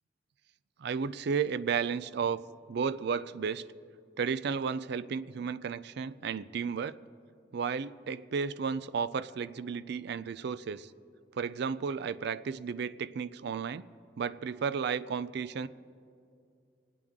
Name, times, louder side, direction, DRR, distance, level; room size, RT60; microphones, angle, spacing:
voice 1, 0.8-2.4 2.7-3.6 4.2-7.0 7.5-10.9 11.3-13.8 14.2-15.7, right 6 dB, 65° right, 14 dB, 0.4 m, -33 dB
27.0 x 9.1 x 3.6 m, 2.4 s
head